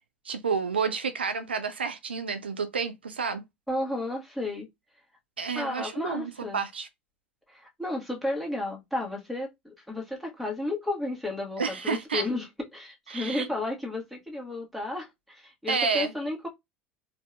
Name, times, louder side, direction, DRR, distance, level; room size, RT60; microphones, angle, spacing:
voice 1, 0.3-3.4 5.4-6.9 11.6-12.2 13.1-13.5 15.7-16.1, right 5 dB, 80° right, 0.4 m, -30 dB
voice 2, 3.7-4.7 5.5-6.6 7.5-12.5 12.7-16.5, left 2 dB, ahead, 1.4 m, -33 dB
4.4 x 2.6 x 2.3 m
figure-of-eight pair, 70°, 6 cm